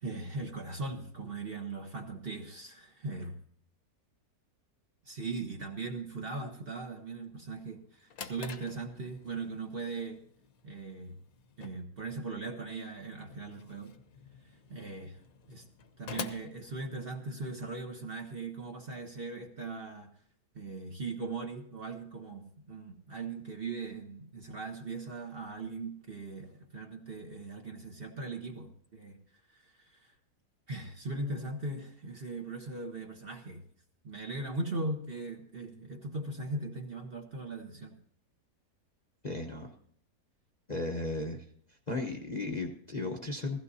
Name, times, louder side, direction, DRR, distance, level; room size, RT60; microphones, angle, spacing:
voice 1, 0.0-3.4 5.0-10.2 10.6-11.1 11.6-13.9 14.7-15.2 15.5-15.7 16.0-20.1 20.5-29.2 29.5-30.1 30.7-33.6 34.0-38.0, right 3 dB, 35° right, 3 dB, 1.2 m, -39 dB
Drawer open or close, 7.8-17.5, left 6 dB, 60° left, 1.3 m, -48 dB
voice 2, 39.2-39.7 40.7-41.4 41.9-43.6, left 2 dB, 30° left, 1 dB, 0.9 m, -35 dB
16.0 x 15.5 x 2.8 m, 0.63 s
omnidirectional pair, 1.8 m